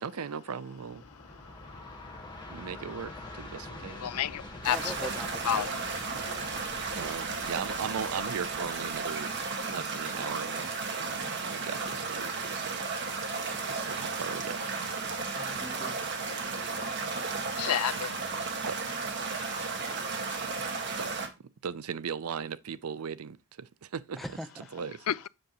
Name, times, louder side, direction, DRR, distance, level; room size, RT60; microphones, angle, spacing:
voice 1, 0.0-1.0 2.5-4.0 7.0-9.3 9.6-10.7 11.0-15.1 18.7-18.8 20.6-21.3 21.6-24.2 24.7-25.1, right 6 dB, 80° right, 0.5 m, -38 dB
Train, 0.7-9.9, left 1 dB, 20° left, 1.4 m, -46 dB
voice 2, 4.0-4.9 5.5-5.7 17.6-18.2 25.1-25.3, left 10 dB, 85° left, 0.4 m, -29 dB
sound 1, 4.6-21.3, right 4 dB, 55° right, 1.6 m, -34 dB
voice 3, 4.7-5.7 15.4-16.2 24.2-24.7, equal, ahead, 0.7 m, -41 dB
7.7 x 6.6 x 3.0 m
head